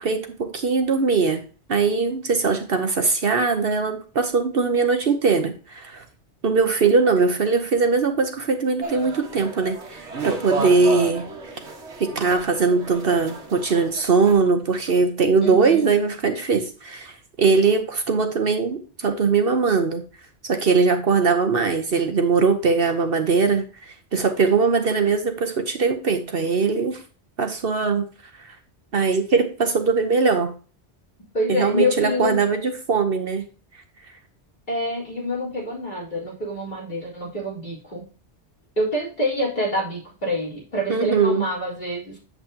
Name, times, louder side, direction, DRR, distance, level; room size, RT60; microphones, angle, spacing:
voice 1, 0.0-1.4 1.7-6.0 6.4-11.3 12.0-20.0 20.4-27.0 27.4-28.1 28.4-28.6 28.9-30.5 31.5-33.5 40.9-41.5, right 4 dB, 55° right, 7 dB, 1.1 m, -21 dB
sound 1, 8.8-14.3, right 3 dB, 75° right, 1.7 m, -33 dB
voice 2, 15.4-15.9 31.3-32.4 34.7-38.0 38.8-42.2, left 1 dB, 45° left, -5 dB, 4.1 m, -26 dB
8.2 x 8.1 x 2.8 m, 0.37 s
omnidirectional pair, 1.2 m